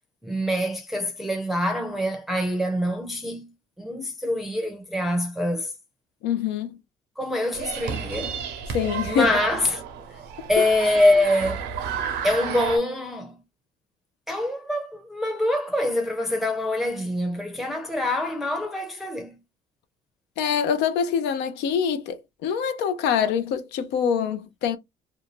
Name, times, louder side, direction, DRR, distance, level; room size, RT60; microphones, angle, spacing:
voice 1, 0.2-5.7 7.2-8.4 9.0-9.8 10.1-10.2 10.5-11.7 12.2-13.4 14.3-19.4, left 1 dB, ahead, 0.5 m, -25 dB
voice 2, 6.2-6.7 8.7-9.3 20.4-24.8, left 7 dB, 85° left, 0.6 m, -25 dB
sound 1, 7.5-12.8, right 7 dB, 85° right, 0.7 m, -32 dB
2.6 x 2.3 x 3.0 m
cardioid pair, 110°, 17 cm